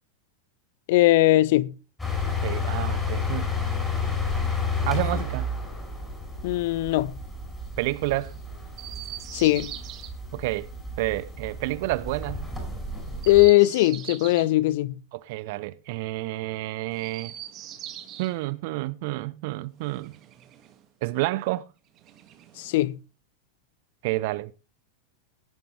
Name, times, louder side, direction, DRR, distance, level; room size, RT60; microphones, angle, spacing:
voice 1, 0.9-1.7 6.4-7.2 9.3-9.7 13.3-14.9 22.6-23.0, left 17 dB, 50° left, 0.5 m, -20 dB
sound 1, 2.0-13.5, left 4 dB, 10° left, 5.9 m, -31 dB
voice 2, 2.4-3.5 4.8-5.5 7.8-8.4 10.3-10.7 11.0-12.5 15.1-17.3 18.2-20.2 21.0-21.7 24.0-24.5, right 19 dB, 50° right, 0.7 m, -29 dB
Chirp tweet, 8.7-10.1 13.1-14.5 16.9-18.3 19.8-20.8 21.9-22.8, right 11 dB, 35° right, 1.7 m, -42 dB
18.5 x 8.9 x 3.2 m
figure-of-eight pair, 90°, 0 cm